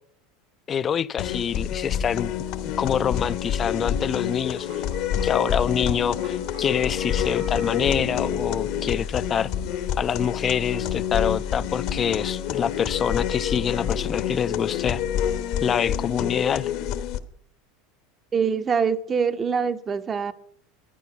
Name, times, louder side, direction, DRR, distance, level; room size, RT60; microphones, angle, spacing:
voice 1, 0.7-2.3 2.6-4.7 5.2-9.5 10.0-15.0 15.6-16.7, left 8 dB, 30° left, 0.4 m, -26 dB
sound 1, 1.2-17.2, left 9 dB, 60° left, 1.0 m, -28 dB
sound 2, 2.8-14.4, right 6 dB, 75° right, 1.0 m, -45 dB
voice 2, 18.3-20.3, right 6 dB, 25° right, 0.7 m, -24 dB
12.0 x 9.1 x 6.0 m
supercardioid pair, 120°, 0 cm